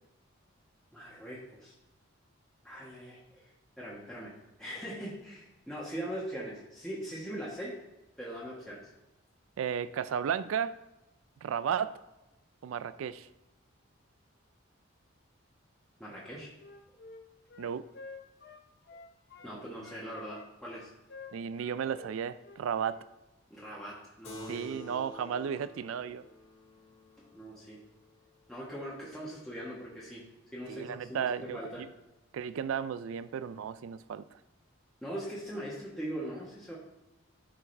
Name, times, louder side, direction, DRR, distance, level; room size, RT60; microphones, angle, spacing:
voice 1, 0.9-1.7 2.6-3.5 3.8-4.3 4.6-7.7 8.2-8.8 16.0-16.5 19.4-20.9 23.5-24.8 27.2-27.8 28.5-30.2 30.5-31.8 35.0-36.7, equal, ahead, -7 dB, 1.3 m, -41 dB
voice 2, 9.6-10.8 11.4-11.9 12.6-13.3 17.6-17.8 21.3-23.0 24.5-26.2 30.7-31.9 32.3-34.2, right 7 dB, 75° right, 14 dB, 0.3 m, -34 dB
Wind instrument woodwind instrument, 16.1-19.5 19.8-23.1, left 4 dB, 50° left, 0.6 m, -50 dB
Keyboard (musical), 24.2-29.1, left 1 dB, 30° left, 1.7 m, -50 dB
12.0 x 4.8 x 3.4 m, 0.99 s
head